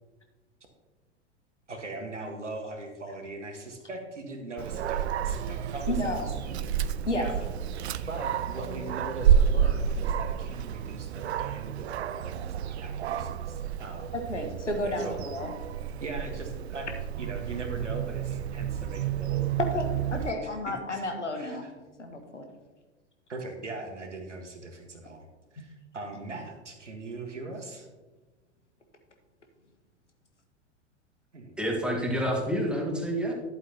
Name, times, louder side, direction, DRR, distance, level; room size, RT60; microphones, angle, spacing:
voice 1, 1.7-6.6 7.1-7.4 7.9-14.1 14.8-15.2 16.0-16.9 17.2-19.8 20.3-21.0 21.3-21.7 23.3-25.3 25.5-27.9 31.3-31.5, right 2 dB, 80° right, 4 dB, 1.6 m, -40 dB
Dog, 4.6-20.3, right 8 dB, 65° right, 0.5 m, -30 dB
voice 2, 5.9-6.3 7.1-7.3 14.1-15.5 19.7-21.7 22.0-22.4, left 1 dB, 85° left, 5 dB, 1.4 m, -32 dB
voice 3, 31.6-33.3, equal, 5° right, 1 dB, 1.5 m, -28 dB
11.0 x 8.2 x 2.9 m, 1.2 s
figure-of-eight pair, 90°, 35 cm